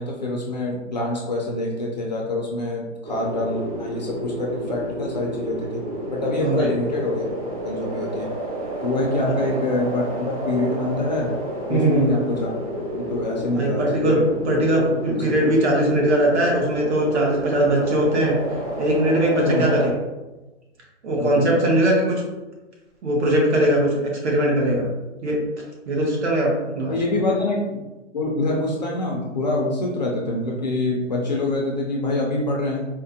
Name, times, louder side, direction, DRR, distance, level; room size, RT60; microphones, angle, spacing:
voice 1, 0.0-5.8 6.1-7.3 7.6-8.3 8.8-11.3 11.7-12.5 13.0-14.3 14.7-15.3 19.4-19.6 21.2-21.6 26.9-27.9 28.1-32.8, left 2 dB, 35° left, -2 dB, 0.4 m, -25 dB
sound 1, 3.0-19.9, equal, 30° right, 0.5 m, -30 dB
voice 2, 6.4-6.7 9.4-9.5 11.7-12.1 13.5-14.2 14.4-18.4 18.8-19.9 21.0-22.1 23.0-24.9 25.2-25.4 25.9-27.0, right 1 dB, 60° right, -2 dB, 1.2 m, -20 dB
4.2 x 2.1 x 2.7 m, 1.1 s
hypercardioid pair, 165°, 37 cm